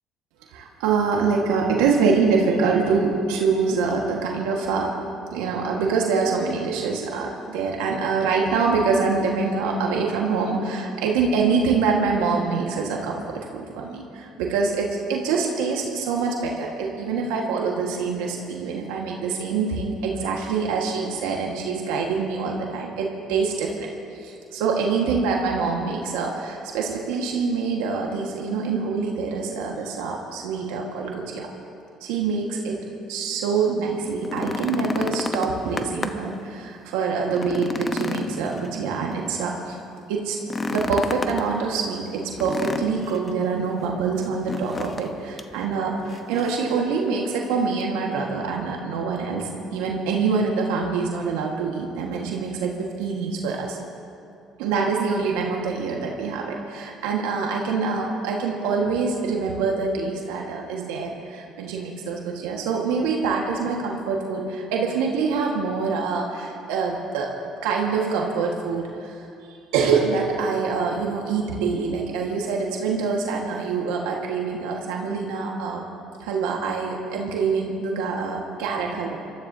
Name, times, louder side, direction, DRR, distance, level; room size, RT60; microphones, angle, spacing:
voice 1, 0.5-4.9 5.3-23.9 24.2-31.5 32.0-32.8 33.1-39.7 40.1-40.4 40.7-53.8 54.6-67.3 67.6-69.1 69.7-75.8 76.2-79.2, right 5 dB, 90° right, 0 dB, 1.6 m, -25 dB
sound 1, 34.1-36.4 36.8-36.9 37.3-39.2 40.4-41.5 42.4-43.3 44.5-45.1 45.4-45.5 46.1-46.7 47.8-47.9, left 3 dB, 30° left, 0.9 m, -30 dB
25.0 x 13.5 x 2.8 m, 2.6 s
supercardioid pair, 85°, 0 cm